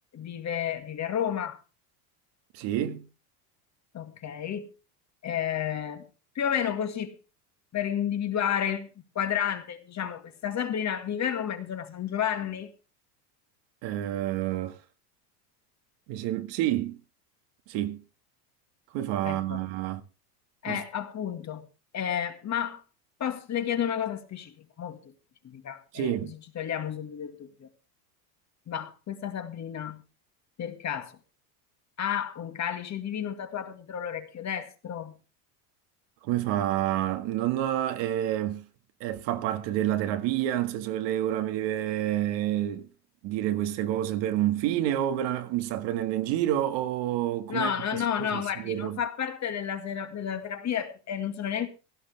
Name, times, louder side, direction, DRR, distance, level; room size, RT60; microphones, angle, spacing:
voice 1, 0.1-1.6 3.9-4.7 5.2-6.1 6.4-7.2 7.7-12.7 19.2-19.6 20.6-21.7 21.9-22.8 23.2-25.0 25.4-27.7 28.7-30.0 30.6-31.1 32.0-35.2 47.5-51.7, left 9 dB, 35° left, 2.0 m, -31 dB
voice 2, 2.5-3.1 13.8-14.8 16.1-17.0 17.7-18.0 18.9-20.0 20.7-20.8 25.9-26.3 36.2-38.6 39.0-42.9 43.2-48.0 48.3-49.0, right 12 dB, 60° right, 1.8 m, -28 dB
16.5 x 13.0 x 3.4 m
supercardioid pair, 110°, 48 cm